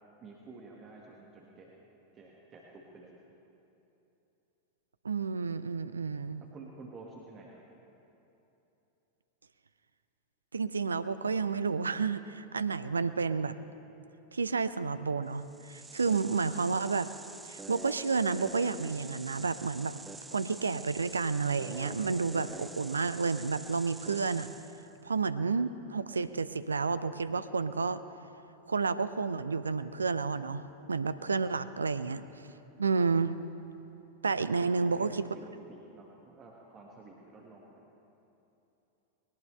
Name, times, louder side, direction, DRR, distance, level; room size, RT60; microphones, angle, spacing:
voice 1, 0.2-3.2 6.5-7.6 34.5-37.8, right 3 dB, 25° right, -2 dB, 1.7 m, -51 dB
voice 2, 5.0-6.4 10.5-13.5 14.3-17.1 17.4-19.9 20.3-24.5 25.0-28.0 28.7-32.4 32.8-33.4 34.2-35.3, right 4 dB, 75° right, 13 dB, 0.5 m, -31 dB
sound 1, 15.4-24.9, right 3 dB, 10° right, 0.5 m, -47 dB
20.0 x 18.0 x 3.3 m, 3.0 s
figure-of-eight pair, 90°, 0 cm